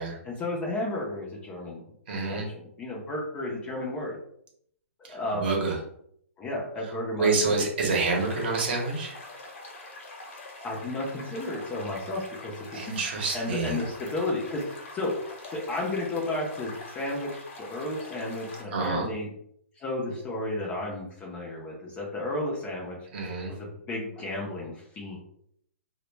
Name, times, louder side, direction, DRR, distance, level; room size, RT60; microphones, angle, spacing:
voice 1, 0.0-1.8 2.1-4.2 5.0-5.5 6.4-7.7 10.6-13.0 13.3-15.1 15.5-19.3 19.8-23.0 23.5-25.2, left 2 dB, 15° left, -2 dB, 0.4 m, -33 dB
voice 2, 2.1-2.5 5.1-5.8 7.2-9.2 12.7-13.8 18.7-19.1 23.1-23.5, right 3 dB, 45° right, 0 dB, 0.7 m, -27 dB
sound 1, 8.1-18.7, left 2 dB, 60° left, 0.8 m, -44 dB
2.1 x 2.0 x 3.1 m, 0.68 s
hypercardioid pair, 155°, 8 cm